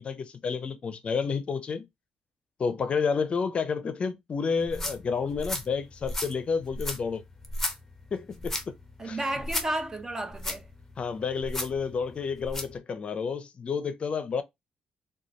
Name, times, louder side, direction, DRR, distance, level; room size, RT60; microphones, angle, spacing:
voice 1, 0.0-1.9 2.6-7.2 8.1-8.7 9.0-9.2 11.0-14.4, left 5 dB, 45° left, 0.5 m, -30 dB
sound 1, 4.6-12.8, left 1 dB, 10° left, 0.9 m, -36 dB
voice 2, 9.0-10.7, right 1 dB, 20° right, 0.6 m, -32 dB
3.8 x 2.3 x 3.0 m
cardioid pair, 100°, 3 cm